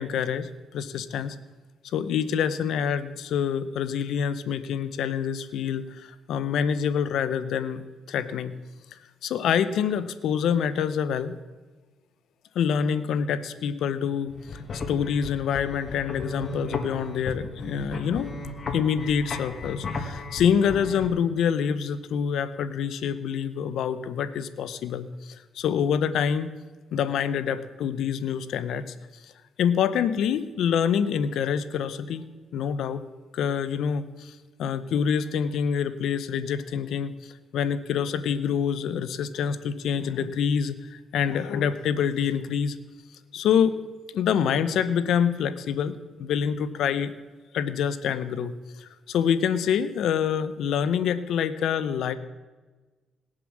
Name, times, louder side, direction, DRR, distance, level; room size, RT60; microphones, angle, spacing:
voice 1, 0.0-1.4 1.9-7.8 8.1-8.5 8.9-11.4 12.5-14.6 14.9-18.3 18.7-26.5 26.9-28.9 29.6-32.2 32.5-33.0 33.3-37.1 37.5-42.8 43.3-43.8 44.1-47.1 47.5-48.5 48.8-52.1, left 7 dB, 75° left, 13 dB, 0.8 m, -26 dB
sound 1, 14.3-21.1, left 3 dB, 45° left, 1.9 m, -35 dB
19.0 x 7.6 x 6.3 m, 1.3 s
cardioid pair, 90°, 0 cm